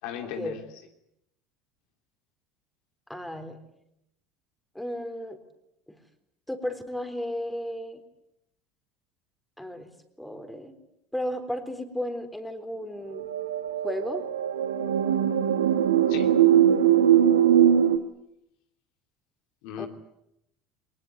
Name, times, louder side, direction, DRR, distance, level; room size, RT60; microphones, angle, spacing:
voice 1, 0.0-0.8 16.1-16.3 19.6-19.9, left 9 dB, 65° left, 4 dB, 2.8 m, -36 dB
voice 2, 3.1-3.6 4.7-5.4 5.9-6.0 6.5-8.0 9.6-9.9 10.2-10.8 11.1-13.3 13.8-14.2 19.8-19.9, equal, 5° left, 7 dB, 3.9 m, -34 dB
sound 1, 13.1-18.0, right 10 dB, 80° right, 1.3 m, -21 dB
22.5 x 21.0 x 9.4 m, 0.80 s
hypercardioid pair, 70°, 0 cm